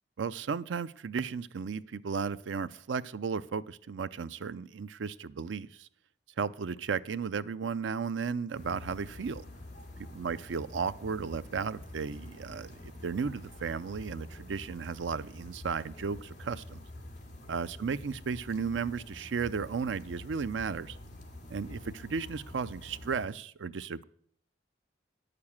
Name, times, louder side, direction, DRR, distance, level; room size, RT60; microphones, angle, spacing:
voice 1, 0.2-5.9 6.4-9.4 10.0-16.8 17.5-21.0 21.5-24.0, right 5 dB, 85° right, 15 dB, 0.5 m, -34 dB
sound 1, 8.5-23.3, left 1 dB, 45° left, 2.1 m, -47 dB
9.6 x 6.7 x 7.2 m, 0.63 s
head